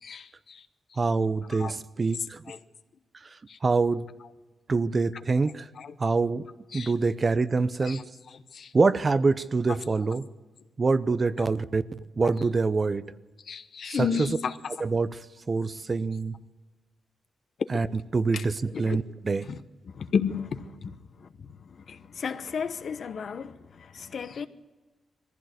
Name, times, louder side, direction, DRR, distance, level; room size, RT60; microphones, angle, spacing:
voice 1, 0.0-0.6 1.5-1.7 2.5-2.6 3.5-3.6 5.8-5.9 6.7-6.9 7.8-8.0 8.3-8.7 12.2-12.3 13.5-14.6 18.3-18.4 18.7-19.0 19.4-19.6 19.9-24.5, left 6 dB, 55° left, 1.0 m, -33 dB
voice 2, 1.0-2.4 3.6-4.1 4.7-5.7 6.0-6.5 6.7-8.0 8.7-10.3 10.8-13.0 14.0-14.3 14.8-15.1 15.5-16.3 17.7-17.9 18.1-19.4, right 4 dB, 30° right, 0.6 m, -25 dB
21.5 x 15.5 x 8.1 m
wide cardioid pair, 135°, 0 cm